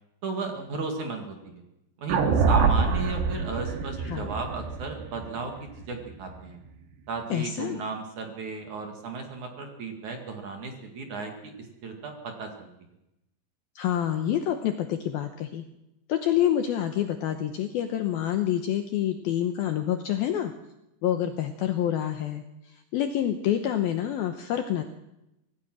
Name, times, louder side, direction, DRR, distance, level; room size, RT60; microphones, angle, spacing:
voice 1, 0.2-1.6 2.0-6.6 7.1-12.7, right 4 dB, 50° right, 3 dB, 2.8 m, -35 dB
sound 1, 2.1-6.4, right 5 dB, 70° right, 3.8 m, -25 dB
voice 2, 7.3-7.8 13.8-15.7 16.1-20.5 21.0-24.8, left 11 dB, 75° left, 7 dB, 2.3 m, -27 dB
25.0 x 17.5 x 6.2 m, 0.89 s
omnidirectional pair, 5.3 m